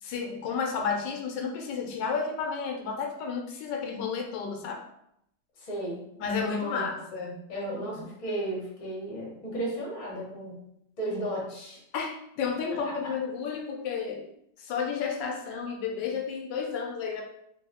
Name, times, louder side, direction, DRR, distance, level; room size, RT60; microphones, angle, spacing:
voice 1, 0.0-4.8 6.2-7.8 11.9-14.3 14.6-17.2, left 5 dB, 80° left, 2 dB, 1.2 m, -32 dB
voice 2, 5.6-6.8 7.5-10.6 11.0-11.8 12.8-12.9, right 1 dB, 30° left, -4 dB, 0.8 m, -34 dB
3.0 x 2.6 x 2.7 m, 0.76 s
omnidirectional pair, 1.9 m